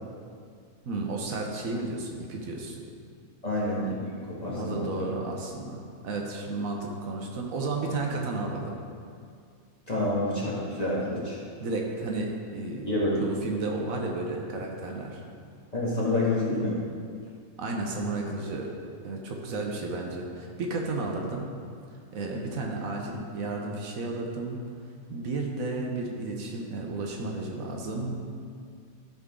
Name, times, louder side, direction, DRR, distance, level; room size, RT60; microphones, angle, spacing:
voice 1, 0.9-2.8 4.6-8.8 11.6-15.2 17.6-18.7 19.0-21.5 21.9-24.6 25.1-28.2, right 2 dB, 70° right, 0 dB, 1.2 m, -33 dB
voice 2, 3.4-4.0 4.3-5.0 9.9-11.4 12.9-13.2 15.7-16.7, left 1 dB, 30° left, -7 dB, 1.7 m, -28 dB
11.5 x 4.2 x 3.7 m, 2.2 s
omnidirectional pair, 1.5 m